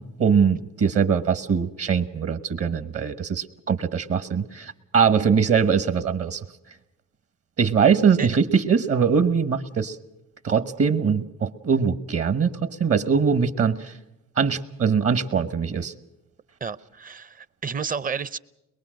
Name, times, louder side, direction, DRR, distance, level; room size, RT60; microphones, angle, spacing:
voice 1, 0.0-6.4 7.6-10.0 10.4-14.0 14.4-15.9, right 6 dB, 50° right, 12 dB, 1.2 m, -22 dB
voice 2, 16.6-18.4, right 6 dB, 30° right, 17 dB, 0.7 m, -31 dB
23.0 x 21.5 x 6.4 m, 0.92 s
cardioid pair, 90°, 30 cm